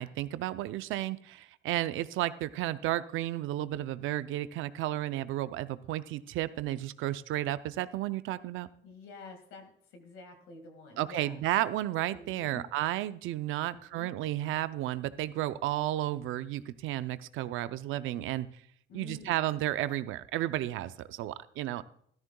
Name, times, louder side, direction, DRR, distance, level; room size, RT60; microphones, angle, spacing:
voice 1, 0.0-8.7 11.0-18.5 18.9-21.8, right 14 dB, 90° right, 14 dB, 0.5 m, -33 dB
voice 2, 8.8-11.4 12.1-12.6 13.9-14.1 18.9-19.5, left 3 dB, 90° left, 5 dB, 1.9 m, -49 dB
13.5 x 13.0 x 2.2 m, 0.65 s
cardioid pair, 90°, 20 cm